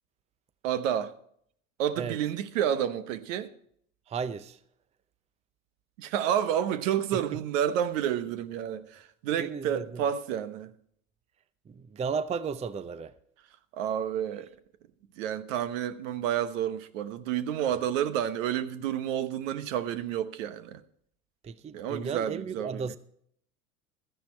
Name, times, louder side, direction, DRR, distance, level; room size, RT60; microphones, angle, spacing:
voice 1, 0.6-1.1 1.8-3.5 6.0-10.7 13.7-14.5 15.2-20.8 21.7-22.9, right 10 dB, 65° right, 1.2 m, -30 dB
voice 2, 4.1-4.6 7.1-7.4 9.4-10.0 11.7-13.1 21.4-23.0, right 5 dB, 15° right, 0.5 m, -34 dB
13.5 x 10.5 x 4.4 m
hypercardioid pair, 85°, 41 cm